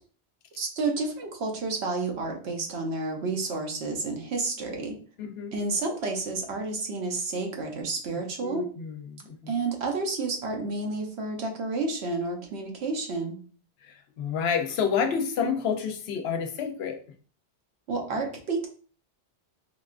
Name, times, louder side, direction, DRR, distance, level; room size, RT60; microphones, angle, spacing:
voice 1, 0.6-5.0 5.5-8.6 9.5-13.4 17.9-18.7, right 3 dB, 70° right, 0.9 m, -30 dB
voice 2, 5.2-5.6 8.4-9.5 13.9-17.0, left 6 dB, 70° left, 0.8 m, -29 dB
3.7 x 2.3 x 2.4 m
omnidirectional pair, 1.2 m